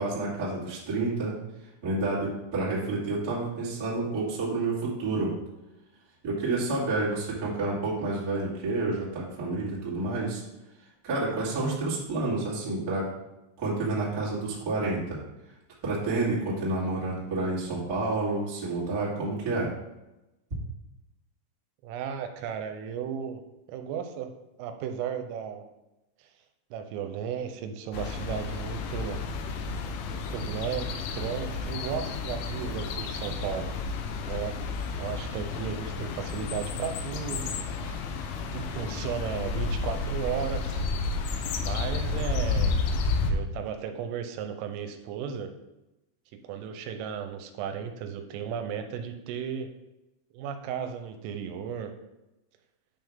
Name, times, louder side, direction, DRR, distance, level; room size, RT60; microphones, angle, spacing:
voice 1, 0.0-1.3 1.8-5.3 6.2-10.4 11.0-13.1 13.6-15.2 15.8-19.7, right 2 dB, 35° right, -7 dB, 1.5 m, -29 dB
voice 2, 21.8-23.4 23.7-24.3 24.6-25.6 26.2-26.3 26.7-29.2 30.1-33.7 34.2-34.6 35.0-37.6 37.8-38.0 38.5-40.9 41.6-42.8 43.3-45.5 46.4-49.7 50.3-51.9, right 7 dB, 90° right, 7 dB, 3.3 m, -35 dB
sound 1, 27.9-43.3, left 4 dB, 80° left, 3.1 m, -31 dB
9.4 x 5.7 x 3.5 m, 0.96 s
omnidirectional pair, 5.8 m